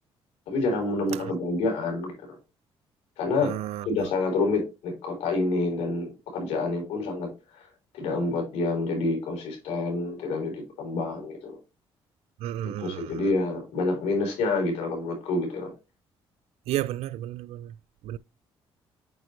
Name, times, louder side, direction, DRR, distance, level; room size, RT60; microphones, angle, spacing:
voice 1, 0.5-2.4 3.2-3.5 3.8-7.3 7.6-7.7 7.9-11.5 12.6-15.7, left 3 dB, 85° left, 4.0 m, -28 dB
voice 2, 3.4-3.9 12.4-13.3 16.7-17.7 18.0-18.2, right 13 dB, 80° right, 0.4 m, -32 dB
8.3 x 5.0 x 3.2 m
cardioid pair, 95°, 10 cm